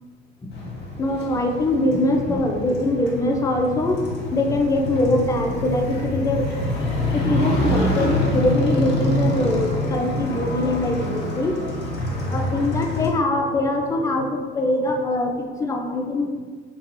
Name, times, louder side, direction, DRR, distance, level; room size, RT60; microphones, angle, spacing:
voice 1, 0.4-0.7 1.0-4.0 4.3-6.5 7.1-11.8 12.1-16.3, left 1 dB, 10° left, 2 dB, 0.3 m, -23 dB
Motorcycle, 0.5-13.1, left 1 dB, 30° left, 0.9 m, -26 dB
2.9 x 2.9 x 3.0 m, 1.4 s
figure-of-eight pair, 70°, 33 cm